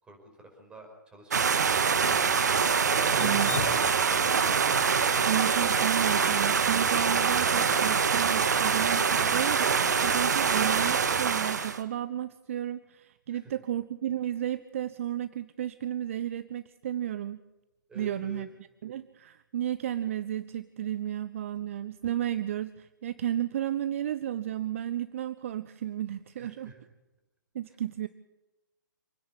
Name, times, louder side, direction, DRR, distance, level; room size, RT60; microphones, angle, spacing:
voice 1, 0.0-2.5 3.0-4.3 13.3-13.5 17.9-18.4 26.4-26.8, right 1 dB, 10° right, 3 dB, 5.3 m, -48 dB
sound 1, 1.3-11.8, right 6 dB, 60° right, 1.8 m, -25 dB
Drip, 3.1-7.2, left 8 dB, 50° left, 1.5 m, -39 dB
voice 2, 3.2-3.5 5.2-17.4 17.9-18.5 18.8-26.7 27.5-28.1, right 11 dB, 40° right, 14 dB, 0.8 m, -33 dB
27.5 x 10.5 x 9.7 m, 1.0 s
figure-of-eight pair, 130°, 11 cm